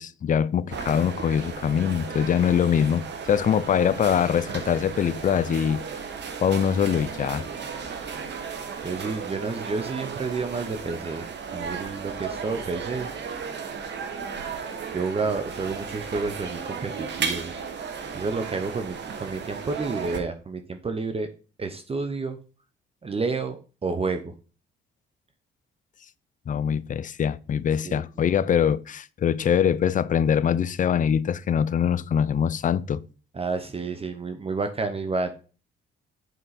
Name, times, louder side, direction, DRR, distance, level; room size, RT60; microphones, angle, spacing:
voice 1, 0.0-5.8 6.4-7.5 26.5-33.0, left 8 dB, 40° left, 0.5 m, -23 dB
sound 1, 0.7-20.2, right 6 dB, 60° right, 1.4 m, -35 dB
voice 2, 8.8-11.3 11.5-13.1 14.9-17.6 18.1-21.3 21.6-22.4 23.0-24.3 27.8-28.0 33.3-35.3, right 4 dB, 30° right, 0.9 m, -30 dB
8.0 x 4.6 x 4.2 m
cardioid pair, 90°, 20 cm